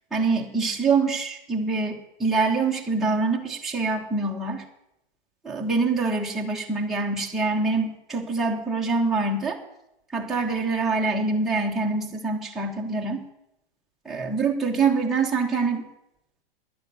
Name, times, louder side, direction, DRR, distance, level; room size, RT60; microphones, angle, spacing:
voice 1, 0.1-4.6 5.4-9.6 10.1-13.3 14.0-15.9, right 4 dB, ahead, -4 dB, 1.4 m, -25 dB
10.5 x 9.6 x 7.1 m, 0.84 s
hypercardioid pair, 145°, 30 cm